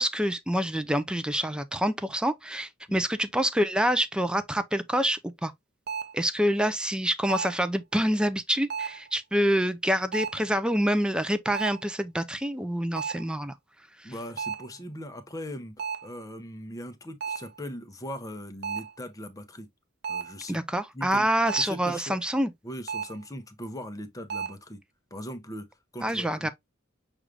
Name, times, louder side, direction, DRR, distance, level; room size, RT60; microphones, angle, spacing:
voice 1, 0.0-5.5 6.1-13.5 14.0-14.1 20.5-22.5 26.0-26.5, equal, 5° right, 0.4 m, -26 dB
sound 1, 5.9-6.2 7.3-7.7 8.7-9.1 10.1-10.5 11.5-11.9 13.0-13.4 14.4-14.8 15.8-16.2 17.2-17.6 18.6-19.0 20.0-20.4 21.5-21.8 22.9-23.2 24.3-24.5, right 6 dB, 50° right, 0.6 m, -34 dB
voice 2, 14.0-19.7 20.1-20.6 20.9-21.3 21.6-22.2 22.6-24.8 25.1-25.7 25.9-26.5, equal, 15° left, 0.7 m, -40 dB
6.2 x 2.5 x 3.2 m
head